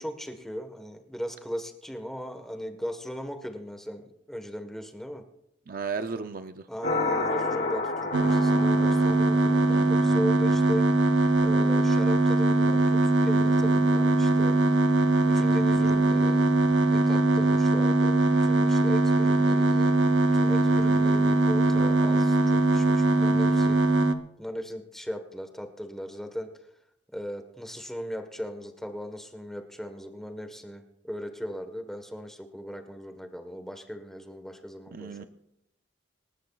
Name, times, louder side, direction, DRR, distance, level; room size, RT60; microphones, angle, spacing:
voice 1, 0.0-5.2 6.7-10.9 11.4-14.6 15.3-16.4 16.9-20.1 20.3-23.8 24.4-26.5 27.1-35.3, equal, ahead, 6 dB, 1.3 m, -37 dB
voice 2, 5.7-6.7 9.6-10.0 34.9-35.2, right 5 dB, 50° right, 9 dB, 0.6 m, -35 dB
sound 1, 6.8-10.2, left 3 dB, 65° left, 5.7 m, -31 dB
sound 2, 8.1-24.1, right 2 dB, 85° right, 0.9 m, -22 dB
27.0 x 12.5 x 2.4 m, 0.80 s
head